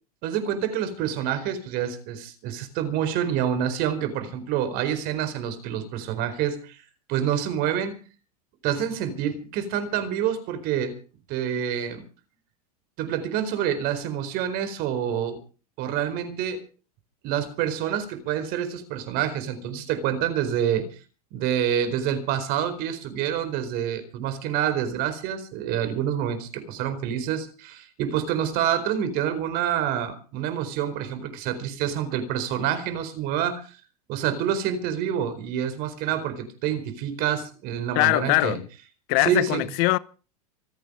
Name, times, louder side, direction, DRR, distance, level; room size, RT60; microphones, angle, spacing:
voice 1, 0.2-6.8 7.1-7.9 8.6-11.0 11.3-12.0 13.0-15.4 15.8-16.6 17.2-20.9 21.3-33.7 34.1-38.6 39.2-39.6, right 9 dB, 50° right, 4.4 m, -27 dB
voice 2, 37.9-38.7 39.1-40.0, left 22 dB, 55° left, 0.8 m, -22 dB
26.0 x 9.1 x 5.6 m
hypercardioid pair, 105°, 20 cm